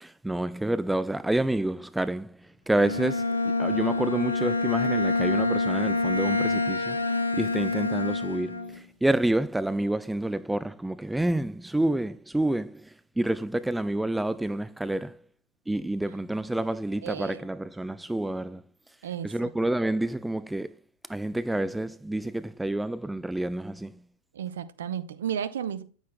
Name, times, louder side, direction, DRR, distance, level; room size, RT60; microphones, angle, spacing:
voice 1, 0.0-2.3 2.7-7.0 7.4-12.9 13.2-15.2 15.7-18.6 19.2-20.7 21.1-23.9, right 1 dB, 5° right, 0.3 m, -28 dB
Bowed string instrument, 2.7-8.8, left 3 dB, 80° left, 0.7 m, -27 dB
voice 2, 16.9-17.5 19.0-19.5 24.3-25.8, right 9 dB, 60° right, 0.7 m, -33 dB
9.4 x 9.2 x 2.2 m
figure-of-eight pair, 90°, 0 cm